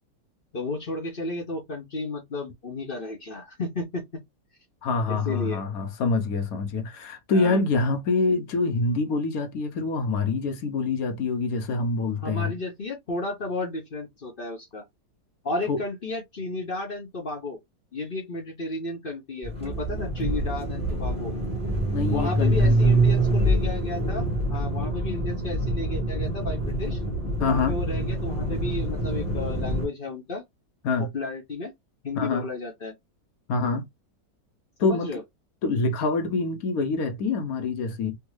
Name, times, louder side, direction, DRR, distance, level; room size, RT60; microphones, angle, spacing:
voice 1, 0.5-4.0 5.1-5.6 7.3-7.6 12.2-14.8 15.4-17.6 17.9-21.3 22.1-27.0 27.4-30.4 31.1-31.7 32.0-32.9 34.8-35.2, left 2 dB, 40° left, 0.8 m, -33 dB
voice 2, 4.8-12.5 15.7-15.8 21.9-23.0 27.4-27.8 30.8-31.1 32.2-32.5 33.5-33.9 34.8-35.1 35.6-38.2, left 3 dB, 65° left, 1.1 m, -26 dB
sound 1, 19.4-29.9, right 1 dB, 5° left, 1.0 m, -25 dB
3.4 x 2.3 x 3.0 m
omnidirectional pair, 1.9 m